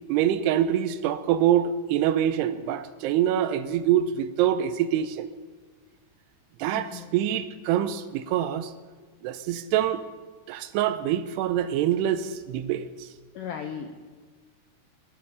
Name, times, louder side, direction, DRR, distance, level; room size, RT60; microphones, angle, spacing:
voice 1, 0.1-5.3 6.6-8.7 9.2-10.0 10.5-13.1, right 10 dB, 85° right, 2.8 m, -25 dB
voice 2, 6.7-7.1 13.4-13.9, left 7 dB, 75° left, 1.9 m, -36 dB
21.0 x 8.6 x 7.0 m
omnidirectional pair, 4.8 m